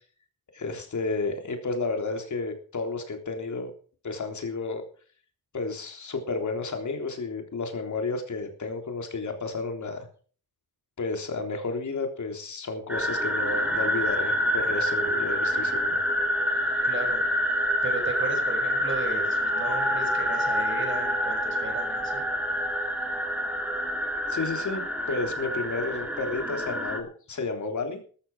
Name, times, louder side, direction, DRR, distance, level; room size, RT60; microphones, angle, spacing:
voice 1, 0.5-3.7 4.0-4.8 5.5-10.1 11.0-16.0 24.3-24.8 25.1-28.0, left 3 dB, 50° left, 4 dB, 3.6 m, -32 dB
sound 1, 12.9-27.0, equal, 5° right, 2.8 m, -27 dB
voice 2, 16.8-17.2 17.8-22.3, right 3 dB, 30° right, 4 dB, 6.2 m, -35 dB
13.5 x 13.0 x 4.9 m, 0.42 s
wide cardioid pair, 130°, 37 cm